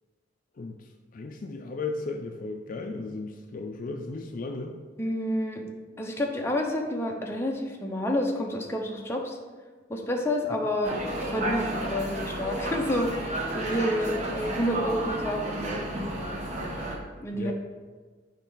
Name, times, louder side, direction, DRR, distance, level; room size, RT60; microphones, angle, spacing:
voice 1, 0.6-4.7 17.3-17.5, left 3 dB, 45° left, 4 dB, 0.4 m, -35 dB
voice 2, 5.0-5.6 6.0-9.4 9.9-15.9 17.2-17.5, left 1 dB, 15° left, 0 dB, 0.7 m, -29 dB
sound 1, 10.8-17.0, right 1 dB, 40° right, 1.0 m, -32 dB
6.6 x 4.4 x 3.8 m, 1.4 s
head